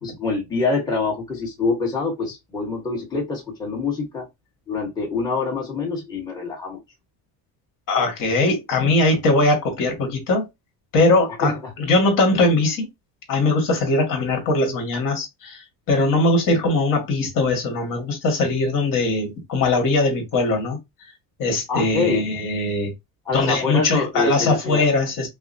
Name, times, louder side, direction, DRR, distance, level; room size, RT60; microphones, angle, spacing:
voice 1, 0.0-4.3 4.7-6.8 11.4-11.7 21.7-22.2 23.2-24.8, left 4 dB, 10° left, 1.2 m, -25 dB
voice 2, 7.9-10.4 10.9-12.9 13.3-20.8 21.4-22.9 23.3-25.3, left 2 dB, 50° left, 1.9 m, -20 dB
5.4 x 2.0 x 2.7 m
cardioid pair, 155°, 42 cm